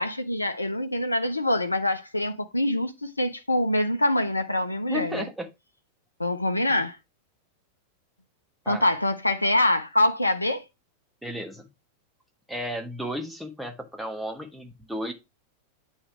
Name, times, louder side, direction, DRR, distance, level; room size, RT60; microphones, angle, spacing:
voice 1, 0.0-5.3 6.2-7.0 8.7-10.6, left 1 dB, 85° left, 0.6 m, -25 dB
voice 2, 4.9-5.5 6.7-6.8 8.6-8.9 11.2-11.7 12.5-15.1, equal, 5° right, 1.2 m, -34 dB
8.8 x 3.2 x 4.7 m
figure-of-eight pair, 90°, 0 cm